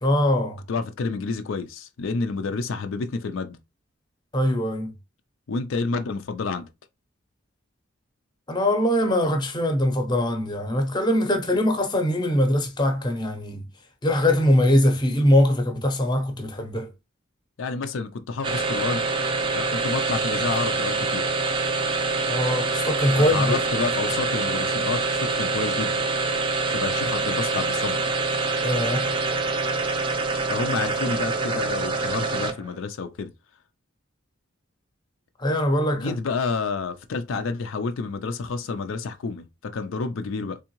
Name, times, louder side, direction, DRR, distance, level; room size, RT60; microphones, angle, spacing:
voice 1, 0.0-0.6 4.3-4.9 8.5-13.7 14.0-16.9 22.3-23.6 28.6-29.1 35.4-36.1, left 1 dB, 20° left, 0.7 m, -22 dB
voice 2, 0.7-3.6 5.5-6.7 17.6-19.1 19.5-21.3 23.3-26.0 26.7-28.0 30.5-33.3 35.9-40.6, left 4 dB, 70° left, 0.4 m, -29 dB
sound 1, 18.4-32.8, right 3 dB, 25° right, 0.5 m, -25 dB
3.6 x 3.3 x 3.0 m
head